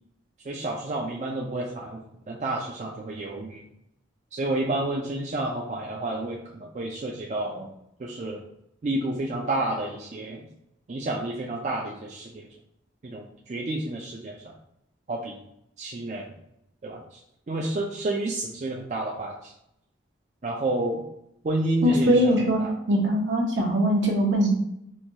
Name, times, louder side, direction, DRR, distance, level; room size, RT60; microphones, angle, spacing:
voice 1, 0.5-3.6 4.3-7.7 8.0-8.4 8.8-10.4 10.9-12.5 13.0-14.5 15.1-15.4 15.8-16.3 16.8-17.2 17.5-19.5 20.4-21.0 21.4-22.7, right 2 dB, 40° right, -2 dB, 0.4 m, -30 dB
voice 2, 21.8-24.5, equal, 70° right, -1 dB, 0.9 m, -22 dB
4.4 x 2.3 x 2.7 m, 0.78 s
head